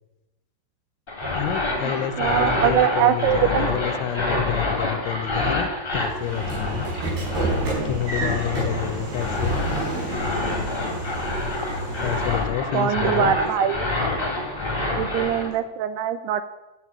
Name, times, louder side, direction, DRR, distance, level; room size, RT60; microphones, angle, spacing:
sound 1, 1.1-15.5, left 2 dB, 15° left, 2.4 m, -27 dB
voice 1, 1.3-6.9 7.8-9.6 12.0-13.4, left 12 dB, 90° left, 13 dB, 3.1 m, -29 dB
voice 2, 2.2-3.7 12.7-13.9 14.9-16.4, right 10 dB, 80° right, 11 dB, 2.4 m, -22 dB
Train / Sliding door, 5.9-12.5, right 1 dB, 60° right, 7.4 m, -29 dB
sound 2, 6.3-13.1, right 2 dB, 45° right, 2.7 m, -46 dB
12.5 x 10.0 x 8.7 m, 1.0 s
omnidirectional pair, 5.2 m